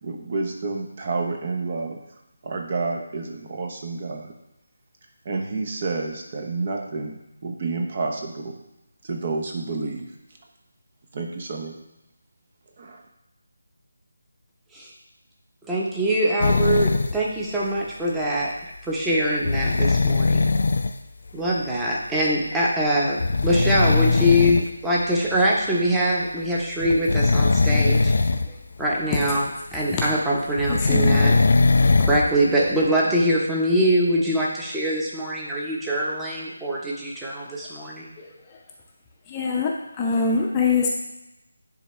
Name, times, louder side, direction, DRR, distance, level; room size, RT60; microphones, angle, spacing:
voice 1, 0.0-2.0 2.4-4.3 5.2-8.6 9.0-10.1 11.1-11.8 12.8-13.0, right 3 dB, 40° right, 2 dB, 0.9 m, -29 dB
voice 2, 15.7-18.5 18.9-20.5 21.3-28.1 28.8-31.4 32.0-38.1, equal, 5° right, -5 dB, 0.9 m, -23 dB
sound 1, 16.4-17.1 19.4-20.9 22.3-22.4 23.2-24.6 25.3-25.4 26.8-28.5 28.8-28.9 30.6-32.3 32.8-32.9, left 3 dB, 55° left, 0.4 m, -20 dB
voice 3, 30.7-31.2 38.2-38.3 39.3-39.7 40.0-40.9, left 4 dB, 20° left, -2 dB, 0.7 m, -23 dB
10.5 x 3.5 x 3.2 m, 0.90 s
figure-of-eight pair, 160°, 0 cm